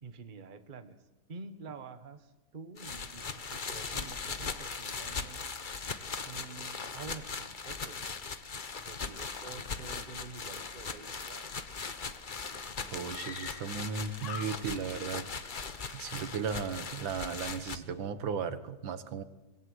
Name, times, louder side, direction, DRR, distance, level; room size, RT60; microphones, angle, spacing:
voice 1, 0.0-1.0 1.3-5.5 6.2-8.2 8.8-11.5, right 4 dB, 30° right, 9 dB, 1.3 m, -48 dB
sound 1, 2.8-17.8, left 4 dB, 35° left, 0.9 m, -39 dB
Screaming, 12.3-12.4 13.1-13.9 14.2-15.0 15.3-16.2, left 7 dB, 65° left, 1.8 m, -45 dB
voice 2, 12.9-15.3 15.9-19.2, right 6 dB, 75° right, 12 dB, 2.0 m, -36 dB
24.5 x 21.5 x 8.1 m, 1.0 s
omnidirectional pair, 2.1 m